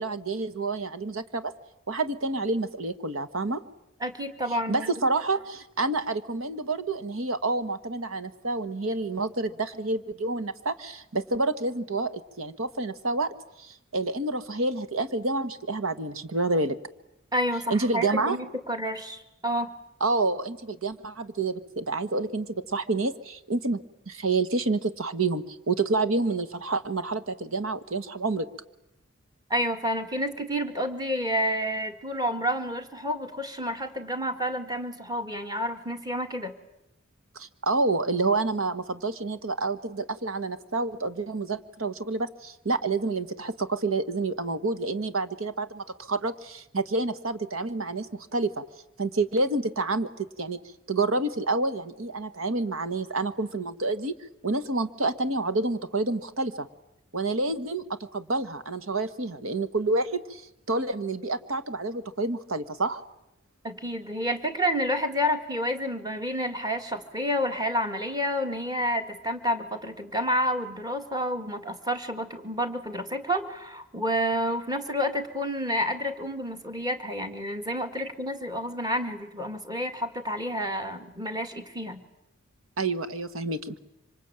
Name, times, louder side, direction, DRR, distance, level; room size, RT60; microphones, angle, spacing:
voice 1, 0.0-1.5 1.9-3.6 4.7-16.8 17.7-18.4 20.0-23.8 24.1-28.5 37.3-48.6 49.0-50.6 50.9-54.1 54.4-56.7 57.1-63.0 82.8-83.8, right 3 dB, 85° right, 11 dB, 1.5 m, -28 dB
voice 2, 4.0-4.9 17.3-19.7 29.5-36.5 63.6-82.0, equal, 20° right, 6 dB, 2.1 m, -29 dB
26.0 x 25.5 x 8.9 m, 0.86 s
head